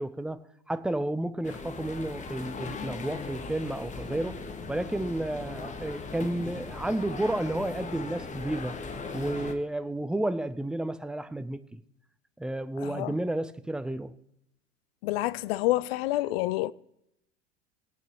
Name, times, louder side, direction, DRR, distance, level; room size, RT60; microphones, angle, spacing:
voice 1, 0.0-4.4 4.7-8.8 9.1-11.8 12.4-14.1, right 1 dB, ahead, 0.4 m, -31 dB
sound 1, 1.4-9.5, left 4 dB, 20° left, 1.3 m, -39 dB
voice 2, 12.8-13.1 15.0-16.7, left 17 dB, 55° left, 0.6 m, -28 dB
21.5 x 9.0 x 2.9 m
figure-of-eight pair, 80°, 36 cm